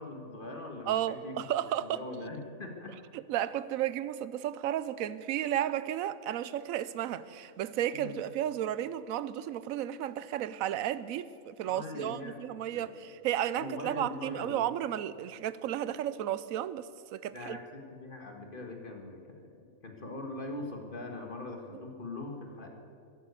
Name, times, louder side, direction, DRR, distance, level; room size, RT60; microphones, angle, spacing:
voice 1, 0.0-1.4 1.8-3.0 7.9-8.2 11.6-12.3 12.7-12.9 13.5-14.6 17.3-19.5 19.8-22.7, left 2 dB, 40° left, 1.7 m, -42 dB
voice 2, 0.9-2.0 3.1-17.6, right 11 dB, 75° right, 1.0 m, -33 dB
15.0 x 11.5 x 8.1 m
omnidirectional pair, 1.5 m